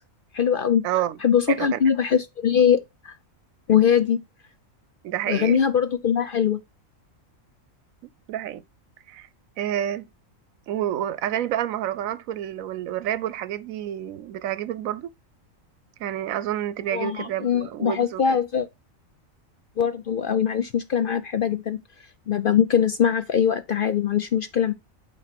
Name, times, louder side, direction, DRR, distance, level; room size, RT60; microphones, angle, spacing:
voice 1, 0.3-0.8 1.2-3.1 3.7-4.2 5.3-6.6 16.9-18.7 19.8-21.8 22.3-24.7, left 8 dB, 60° left, 0.6 m, -22 dB
voice 2, 0.8-1.2 1.5-1.8 5.0-5.7 8.3-8.6 9.1-9.3 9.6-10.1 10.7-15.1 16.0-18.4, right 11 dB, 85° right, 1.1 m, -29 dB
8.6 x 3.1 x 5.9 m
omnidirectional pair, 1.4 m